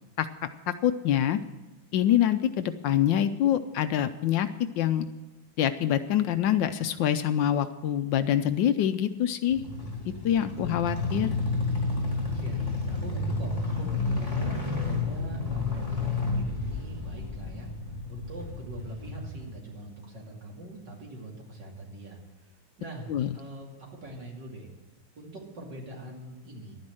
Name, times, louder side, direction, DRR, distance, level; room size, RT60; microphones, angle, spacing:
voice 1, 0.2-1.4 1.9-4.5 4.8-5.1 5.6-9.6 10.2-11.4 23.1-23.3, left 10 dB, 75° left, 11 dB, 1.2 m, -25 dB
sound 1, 9.5-19.5, left 3 dB, 15° left, 2.5 m, -31 dB
voice 2, 12.3-17.7 18.1-24.7 25.1-26.7, right 2 dB, 60° right, -1 dB, 3.3 m, -43 dB
11.5 x 9.7 x 7.6 m, 1.1 s
omnidirectional pair, 2.2 m